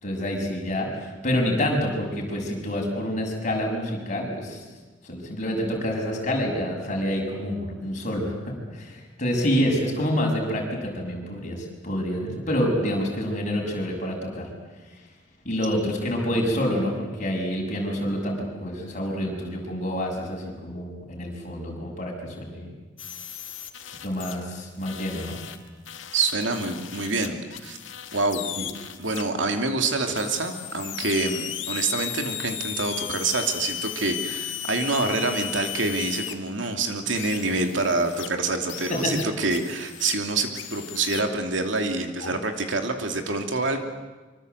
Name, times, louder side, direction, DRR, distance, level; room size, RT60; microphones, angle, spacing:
voice 1, 0.0-4.6 5.0-14.5 15.4-22.7 23.9-25.4 28.6-28.7 38.9-39.2 42.2-42.3, equal, 40° left, 0 dB, 6.7 m, -27 dB
sound 1, 23.0-24.4 24.8-29.2 30.1-36.3 37.1-38.3 38.7-40.2 40.5-41.2, left 11 dB, 80° left, 1.9 m, -35 dB
voice 2, 26.1-27.8 28.1-28.4 29.0-43.8, right 3 dB, 70° right, 5 dB, 2.8 m, -26 dB
25.0 x 25.0 x 8.0 m, 1.3 s
head